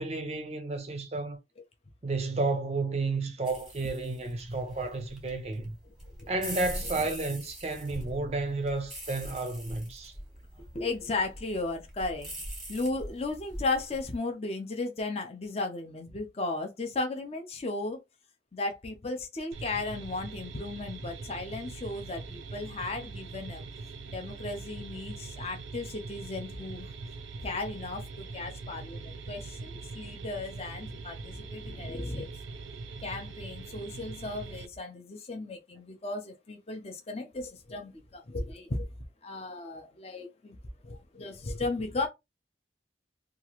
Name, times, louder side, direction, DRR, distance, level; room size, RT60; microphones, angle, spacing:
voice 1, 0.0-1.4 2.0-5.8 6.3-10.1, right 3 dB, 35° right, 0.5 m, -32 dB
sound 1, 3.4-14.1, equal, ahead, 1.0 m, -43 dB
voice 2, 10.7-12.3 12.7-18.0 18.5-23.6 24.1-26.9 27.4-32.3 33.0-38.9 39.2-40.6 40.8-42.1, left 2 dB, 35° left, 0.6 m, -35 dB
sound 2, 19.5-34.7, right 3 dB, 85° right, 0.4 m, -42 dB
2.9 x 2.4 x 2.9 m
head